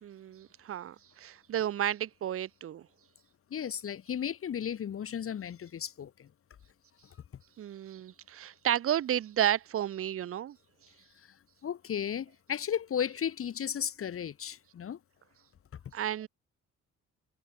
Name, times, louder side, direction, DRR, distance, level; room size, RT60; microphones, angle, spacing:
voice 1, 0.0-2.9 7.6-10.6 15.9-16.3, right 11 dB, 50° right, 0.7 m, -32 dB
voice 2, 3.5-6.3 11.2-11.4 11.6-15.0, left 8 dB, 50° left, 1.2 m, -35 dB
cardioid pair, 90°, 30 cm